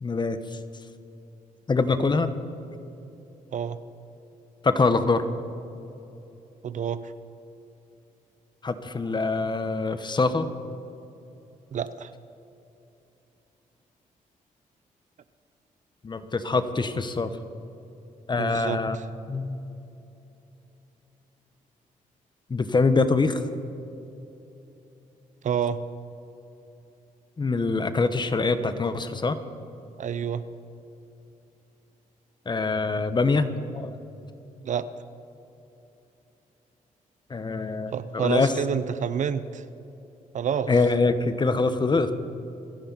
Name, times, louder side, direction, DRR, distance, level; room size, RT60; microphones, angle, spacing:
voice 1, 0.0-0.6 1.7-2.3 4.6-5.3 8.6-10.5 16.0-17.3 18.3-19.0 19.3-19.6 22.5-23.5 27.4-29.4 32.5-34.0 37.3-38.5 40.7-42.1, left 3 dB, 30° left, 10 dB, 1.2 m, -24 dB
voice 2, 6.6-7.1 11.7-12.1 18.4-19.0 25.4-25.8 30.0-30.4 34.6-34.9 37.9-39.6 40.3-40.7, right 8 dB, 60° right, 13 dB, 0.7 m, -28 dB
27.5 x 10.5 x 4.2 m, 2.9 s
cardioid pair, 80°, 14 cm